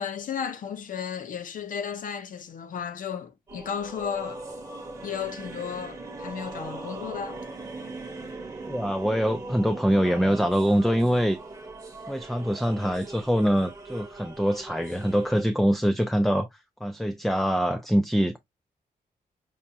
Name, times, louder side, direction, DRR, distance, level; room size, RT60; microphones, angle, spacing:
voice 1, 0.0-4.4 5.0-7.4, left 7 dB, 65° left, 0.7 m, -34 dB
sound 1, 3.5-15.4, right 2 dB, 20° right, 1.1 m, -40 dB
voice 2, 8.7-11.4 12.1-16.5 16.8-18.4, equal, ahead, 0.3 m, -24 dB
5.3 x 2.7 x 2.2 m
wide cardioid pair, 155°, 15 cm